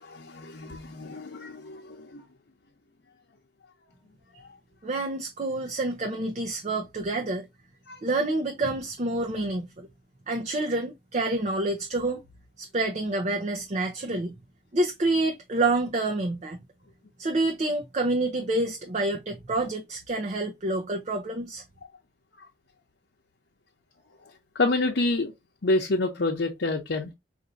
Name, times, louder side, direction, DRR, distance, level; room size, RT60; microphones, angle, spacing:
voice 1, 0.0-2.2 7.9-8.0 24.5-25.3 25.6-27.1, left 2 dB, 90° left, 0.8 m, -28 dB
voice 2, 4.8-7.4 8.0-9.9 10.3-12.2 12.6-14.3 14.7-16.6 17.2-21.6, right 2 dB, 40° right, 0.6 m, -28 dB
5.0 x 2.6 x 2.6 m
head